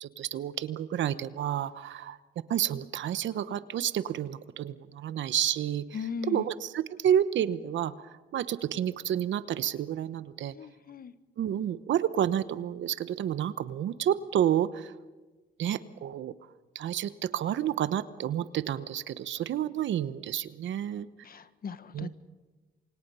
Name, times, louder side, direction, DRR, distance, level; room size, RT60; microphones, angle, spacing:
voice 1, 0.0-2.2 2.5-10.5 11.4-14.9 15.6-16.3 16.7-21.1 21.9-22.1, right 10 dB, 70° right, 14 dB, 1.0 m, -30 dB
voice 2, 5.9-6.5 10.5-11.1 21.2-22.1, left 6 dB, 50° left, 13 dB, 1.3 m, -38 dB
28.0 x 24.5 x 5.6 m, 1.3 s
cardioid pair, 90°, 20 cm